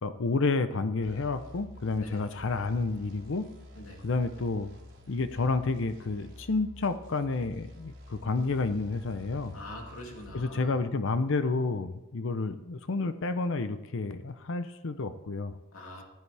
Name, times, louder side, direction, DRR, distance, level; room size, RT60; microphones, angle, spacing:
voice 1, 0.0-3.4 4.0-4.7 5.1-9.6 10.3-15.6, left 3 dB, 60° left, 11 dB, 0.6 m, -30 dB
sound 1, 1.0-10.5, left 1 dB, 60° right, 3.2 m, -49 dB
voice 2, 2.0-2.3 3.7-4.0 9.5-10.8 15.7-16.0, left 1 dB, 80° left, 1 dB, 2.5 m, -44 dB
15.5 x 11.0 x 3.4 m, 0.99 s
head